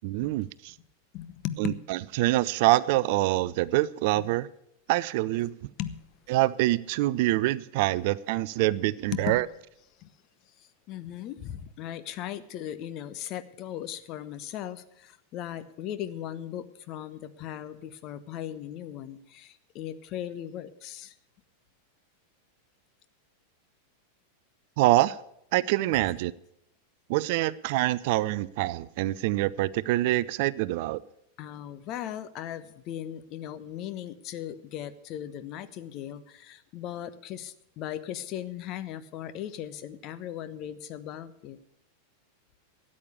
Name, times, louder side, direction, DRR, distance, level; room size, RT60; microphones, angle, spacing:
voice 1, 0.0-0.7 1.6-4.5 4.9-5.5 6.3-9.4 24.8-25.2 25.5-26.3 27.1-31.0, right 17 dB, 50° right, 0.4 m, -25 dB
voice 2, 1.1-1.8 4.2-4.3 5.8-6.0 9.1-9.4 10.0-10.1 10.6-21.1 31.4-41.6, left 11 dB, 40° left, 0.9 m, -38 dB
13.0 x 8.6 x 8.2 m
figure-of-eight pair, 90°, 0 cm